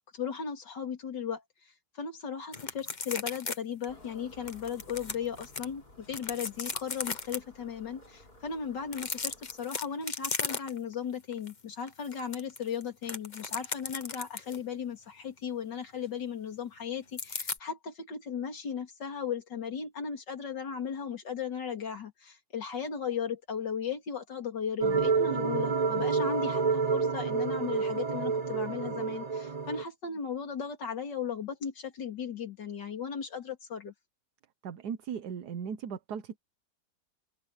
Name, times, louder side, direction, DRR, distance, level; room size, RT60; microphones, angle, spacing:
voice 1, 0.0-1.4 2.0-33.9, left 7 dB, 85° left, 3.3 m, -36 dB
sound 1, 2.5-3.6 3.8-3.9 4.5-5.6 6.1-7.4 8.8-10.9 11.3-11.5 11.9-14.6 17.2-17.6, left 4 dB, 30° left, 1.2 m, -36 dB
sound 2, 3.9-9.6, left 1 dB, 60° left, 7.7 m, -56 dB
sound 3, 24.8-29.8, right 5 dB, 30° right, 0.9 m, -29 dB
voice 2, 34.6-36.4, right 7 dB, 70° right, 1.5 m, -37 dB
omnidirectional pair, 1.8 m